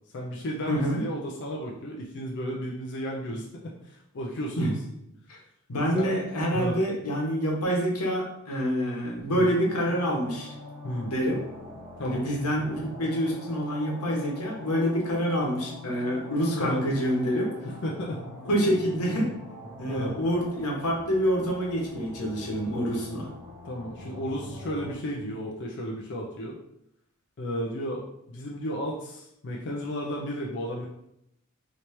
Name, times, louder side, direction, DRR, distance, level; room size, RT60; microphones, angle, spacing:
voice 1, 0.1-4.8 5.9-6.1 6.5-6.8 9.3-9.5 10.8-11.1 12.0-12.3 16.5-16.8 17.6-18.3 19.9-20.2 23.6-26.6 27.4-28.0 28.3-30.9, equal, 50° left, -2 dB, 0.4 m, -33 dB
voice 2, 0.7-1.0 4.6-4.7 5.3-5.4 5.7-10.5 11.1-11.4 12.0-17.5 18.5-19.3 19.8-23.3, equal, 90° left, -2 dB, 1.0 m, -27 dB
sound 1, 9.3-24.9, left 1 dB, 15° right, 0.9 m, -43 dB
3.2 x 2.9 x 2.9 m, 0.78 s
head